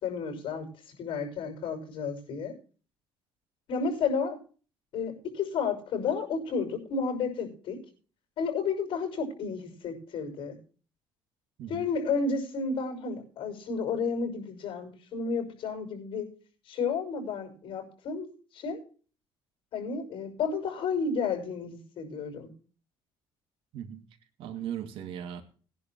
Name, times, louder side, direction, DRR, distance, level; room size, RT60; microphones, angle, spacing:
voice 1, 0.0-2.5 3.7-4.4 4.9-7.8 8.4-10.6 11.7-16.3 16.7-18.3 18.5-18.8 19.7-22.5, left 5 dB, 65° left, 4 dB, 6.1 m, -32 dB
voice 2, 24.4-25.4, right 9 dB, 75° right, 8 dB, 2.4 m, -37 dB
20.0 x 10.5 x 3.0 m, 0.39 s
cardioid pair, 125°, 9 cm